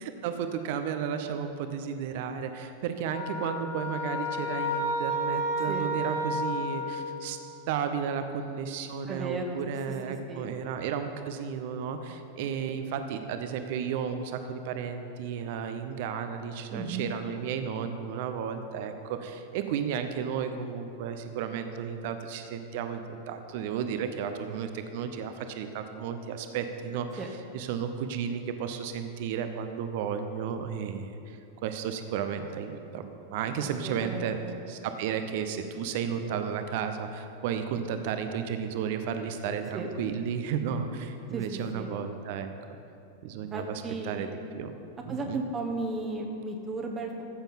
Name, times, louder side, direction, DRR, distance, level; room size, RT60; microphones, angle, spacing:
voice 1, 0.0-7.4 7.7-34.4 34.7-42.5 43.2-44.7 45.1-45.4, right 7 dB, 50° right, 8 dB, 0.7 m, -33 dB
sound 1, 3.1-7.5, equal, 70° left, 1.7 m, -31 dB
voice 2, 9.1-9.6 10.3-10.5 16.7-17.1 27.2-27.3 33.6-34.6 39.7-39.9 41.3-42.0 43.5-44.4 45.1-47.2, right 3 dB, 20° right, 1 dB, 1.1 m, -35 dB
14.5 x 7.1 x 5.7 m, 2.7 s
figure-of-eight pair, 90°, 0 cm